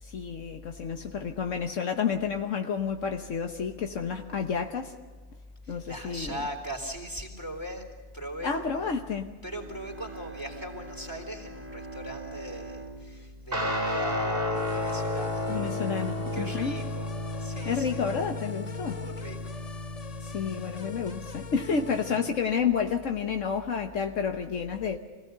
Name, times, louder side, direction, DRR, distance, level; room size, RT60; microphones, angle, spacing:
voice 1, 0.1-4.9 5.7-6.4 8.4-9.3 15.5-16.8 17.6-19.0 20.2-25.0, left 6 dB, 70° left, 5 dB, 1.4 m, -30 dB
voice 2, 5.6-7.8 8.1-9.1 9.4-15.5 16.3-17.1 17.4-17.9 18.8-19.4, equal, 15° left, 2 dB, 3.7 m, -39 dB
Bowed string instrument, 9.4-14.7, right 3 dB, 10° right, 2.5 m, -45 dB
Guitar, 13.5-22.3, left 1 dB, 45° right, 2.2 m, -33 dB
sound 1, 14.5-22.2, left 6 dB, 35° left, 0.7 m, -44 dB
25.5 x 17.0 x 6.8 m, 1.4 s
omnidirectional pair, 1.3 m